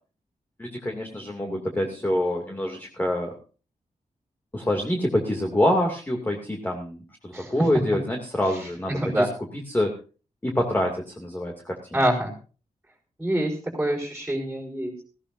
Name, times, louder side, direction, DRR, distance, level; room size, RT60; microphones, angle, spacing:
voice 1, 0.6-3.3 4.5-9.3 9.7-9.9 10.4-11.8, left 1 dB, 15° left, 1 dB, 2.6 m, -26 dB
voice 2, 7.3-7.7 8.9-9.3 11.9-12.3 13.2-14.9, right 1 dB, 5° right, -5 dB, 4.8 m, -25 dB
19.0 x 16.5 x 2.7 m, 0.36 s
wide cardioid pair, 155°, 14 cm